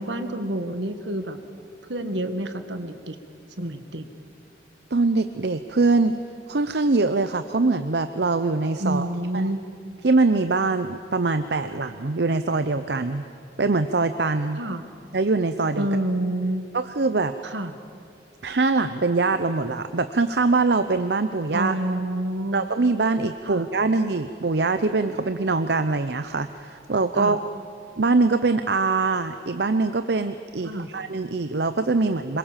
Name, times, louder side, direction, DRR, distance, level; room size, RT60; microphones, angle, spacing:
voice 1, 0.0-1.4 1.9-3.2 3.6-4.1 8.8-9.6 14.6-14.8 15.8-16.6 17.4-17.7 21.5-22.7 23.4-23.6 27.1-27.4 30.6-30.9, right 1 dB, 80° right, 8 dB, 1.7 m, -28 dB
voice 2, 4.9-6.1 6.5-9.1 9.3-9.5 10.0-13.2 13.6-14.6 15.1-15.9 16.7-17.3 18.4-21.7 22.5-27.4 28.0-32.4, right 3 dB, 65° right, 10 dB, 0.7 m, -23 dB
26.5 x 22.5 x 7.4 m, 2.4 s
head